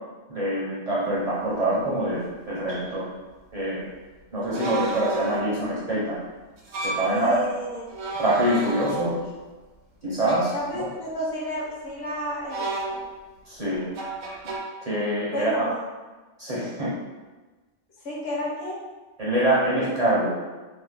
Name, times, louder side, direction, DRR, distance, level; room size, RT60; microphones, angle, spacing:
voice 1, 0.3-3.1 3.5-3.8 4.3-6.2 6.8-7.4 8.2-9.2 10.0-10.9 13.5-13.9 14.8-15.7 16.4-16.9 19.2-20.3, right 1 dB, 45° right, -8 dB, 0.5 m, -25 dB
sound 1, 1.7-1.8 2.7-2.8 4.5-5.6 6.6-7.2 7.9-9.4 10.2-10.6 12.5-13.3 14.0-14.6, right 2 dB, 75° right, 1.0 m, -32 dB
voice 2, 7.0-7.9 10.5-13.0 15.3-15.9 18.0-18.8, left 1 dB, 55° left, -4 dB, 0.9 m, -31 dB
2.9 x 2.0 x 3.2 m, 1.2 s
omnidirectional pair, 1.4 m